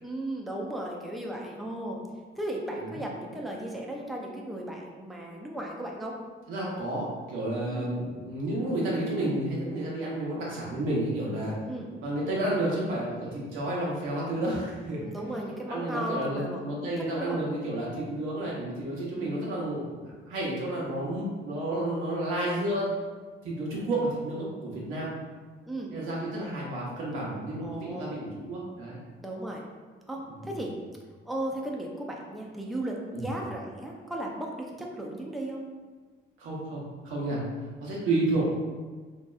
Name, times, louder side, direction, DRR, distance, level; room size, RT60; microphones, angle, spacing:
voice 1, 0.0-2.0 2.4-6.2 7.7-7.9 11.7-11.9 14.9-16.9 17.2-17.4 19.1-19.5 25.7-25.9 27.6-28.2 29.2-29.6 30.1-30.7 31.3-35.6 38.1-38.4, right 1 dB, ahead, -1 dB, 0.4 m, -36 dB
voice 2, 6.5-11.5 12.0-15.1 15.7-22.9 23.4-25.1 25.9-29.0 30.3-30.5 33.1-33.2 36.4-37.4 37.8-38.5, right 1 dB, 90° right, -5 dB, 0.9 m, -31 dB
3.1 x 2.7 x 2.3 m, 1.4 s
cardioid pair, 90°, 20 cm